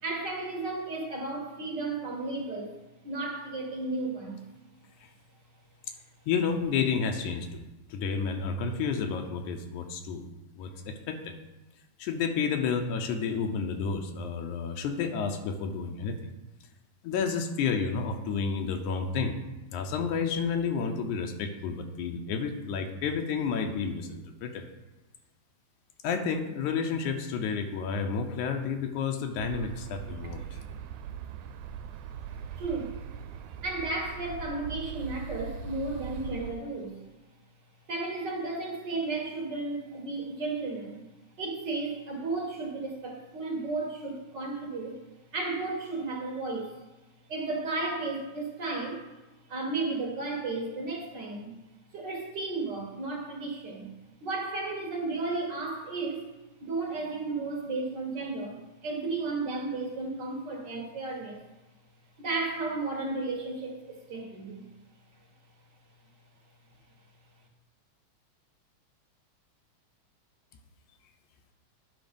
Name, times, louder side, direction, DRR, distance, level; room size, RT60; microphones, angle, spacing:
voice 1, 0.0-2.7 3.0-4.4 32.5-33.0 33.6-37.0 37.9-41.0 41.4-45.0 45.3-46.8 47.3-49.1 49.5-51.6 51.9-53.9 54.2-56.3 56.6-61.4 62.2-64.7, right 3 dB, 45° right, 0 dB, 1.6 m, -33 dB
voice 2, 6.3-7.6 7.9-10.2 10.6-11.3 12.0-16.2 17.0-19.4 19.7-24.7 26.0-30.4, left 5 dB, 85° left, 4 dB, 2.2 m, -30 dB
sound 1, 29.4-36.5, right 7 dB, 85° right, 2.0 m, -40 dB
10.5 x 5.8 x 5.2 m, 1.1 s
omnidirectional pair, 3.4 m